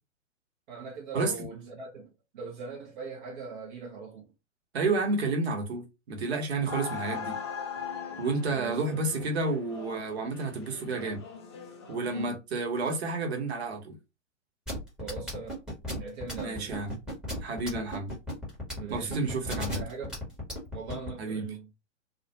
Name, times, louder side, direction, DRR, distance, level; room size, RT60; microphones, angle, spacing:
voice 1, 0.7-4.2 8.5-9.2 12.0-12.3 15.0-15.6 15.9-16.9 18.7-19.3 19.7-20.2 20.7-21.7, right 5 dB, 40° right, 0.6 m, -40 dB
voice 2, 4.7-7.4 8.2-11.2 11.9-14.0 16.4-17.0 17.4-18.1 18.9-19.8 21.2-21.4, right 3 dB, 55° right, 1.0 m, -30 dB
sound 1, 6.7-12.3, left 6 dB, 25° left, 0.3 m, -40 dB
sound 2, 14.7-21.1, left 1 dB, ahead, 0.9 m, -35 dB
2.4 x 2.1 x 2.8 m
figure-of-eight pair, 115°, 38 cm